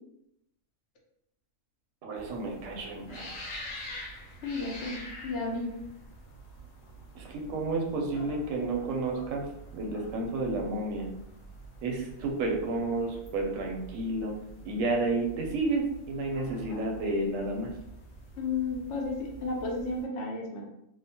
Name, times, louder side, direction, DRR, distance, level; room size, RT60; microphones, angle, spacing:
voice 1, 2.0-3.3 7.1-9.5 9.7-11.0 11.8-14.4 14.6-17.7, right 2 dB, 80° right, 1 dB, 1.0 m, -31 dB
sound 1, 2.1-20.0, right 1 dB, 85° left, 1.2 m, -46 dB
voice 2, 4.4-5.0 5.2-5.7 18.4-20.7, left 3 dB, 65° left, -1 dB, 0.9 m, -32 dB
2.8 x 2.0 x 2.7 m, 0.79 s
omnidirectional pair, 1.4 m